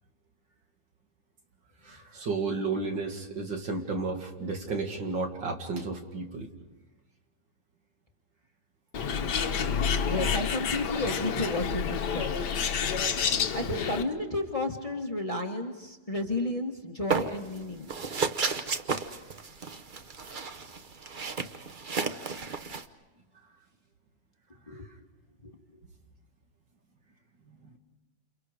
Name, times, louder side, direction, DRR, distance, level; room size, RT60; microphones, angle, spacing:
voice 1, 1.8-6.5 24.7-24.8 27.5-27.8, right 3 dB, 65° right, 3 dB, 2.9 m, -33 dB
Bird, 8.9-14.0, left 6 dB, 60° left, 1.7 m, -29 dB
voice 2, 10.1-12.3 13.5-17.9 24.7-24.9 25.4-25.6, left 1 dB, 20° left, 3 dB, 1.5 m, -32 dB
sound 1, 17.1-17.6 17.9-22.8, right 5 dB, 45° right, 0.6 m, -32 dB
29.0 x 29.0 x 5.1 m, 1.1 s
omnidirectional pair, 2.1 m